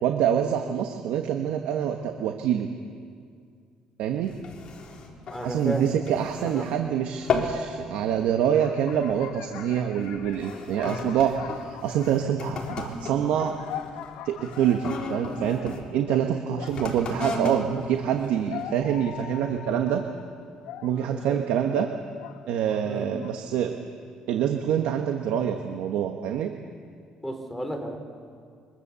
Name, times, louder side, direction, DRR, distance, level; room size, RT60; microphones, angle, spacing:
voice 1, 0.0-2.7 4.0-4.4 5.4-11.4 11.8-13.5 14.2-20.0 20.8-21.9 22.5-23.7 24.3-26.5, right 9 dB, 80° right, 4 dB, 1.3 m, -26 dB
sound 1, 4.2-6.8 7.1-7.7 8.0-8.4 9.0-9.3 10.0-15.8 16.6-19.0 19.5-19.6, left 3 dB, 45° left, 3.3 m, -35 dB
voice 2, 5.3-5.8 6.4-6.7 21.0-21.4 22.8-23.1 27.2-28.0, equal, 5° left, 3 dB, 3.2 m, -33 dB
sound 2, 8.5-17.0 18.1-22.9 23.2-23.6, left 10 dB, 90° left, 1.3 m, -42 dB
24.0 x 23.0 x 7.0 m, 2.2 s
cardioid pair, 145°, 2 cm